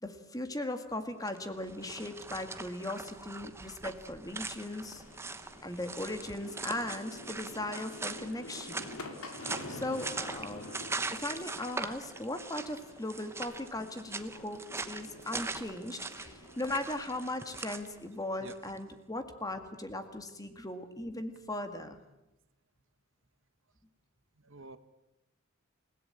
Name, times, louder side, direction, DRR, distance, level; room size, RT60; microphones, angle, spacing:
voice 1, 0.0-5.0 5.6-8.9 9.7-10.7 11.1-22.0, left 1 dB, 15° left, 8 dB, 1.8 m, -38 dB
sound 1, 1.2-18.8, right 3 dB, 10° right, 1.0 m, -42 dB
sound 2, 4.3-17.8, left 2 dB, 90° left, 3.4 m, -48 dB
voice 2, 17.3-18.0 18.4-18.6 18.8-19.0 24.4-24.8, right 3 dB, 60° right, 11 dB, 1.4 m, -53 dB
29.0 x 17.0 x 8.8 m, 0.94 s
head